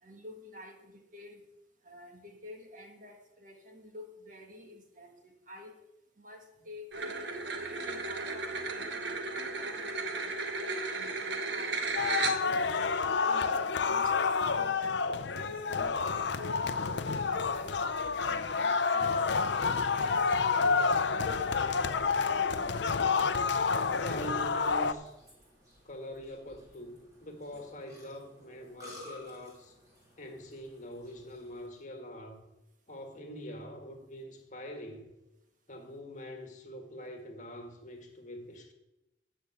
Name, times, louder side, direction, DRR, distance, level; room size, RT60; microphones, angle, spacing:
voice 1, 0.0-1.5 1.8-5.8 6.2-11.8 12.3-17.8 18.1-19.2 19.6-22.9, left 1 dB, 45° right, 3 dB, 1.7 m, -49 dB
sound 1, 6.9-12.7, right 3 dB, 70° right, 1.3 m, -35 dB
sound 2, 12.0-24.9, left 5 dB, 70° left, 0.6 m, -29 dB
Burping eructation, 15.7-31.7, left 1 dB, 20° right, 3.7 m, -56 dB
voice 2, 23.9-25.1 25.8-29.7 30.2-32.4 32.9-35.1 35.7-38.7, equal, 40° left, 4 dB, 1.7 m, -44 dB
14.0 x 5.3 x 8.2 m, 0.95 s
head